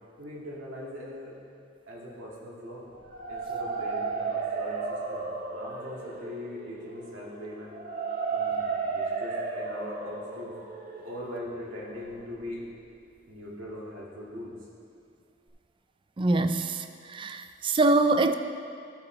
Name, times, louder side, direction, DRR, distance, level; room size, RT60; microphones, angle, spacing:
voice 1, 0.2-1.4 1.9-2.9 3.3-7.8 8.3-10.5 11.0-12.7 13.3-14.6, left 1 dB, 80° right, -5 dB, 2.1 m, -41 dB
sound 1, 2.9-12.8, right 4 dB, 45° right, 1.1 m, -34 dB
voice 2, 16.2-18.3, right 2 dB, 25° right, 9 dB, 0.3 m, -24 dB
13.0 x 5.0 x 4.5 m, 2.4 s
head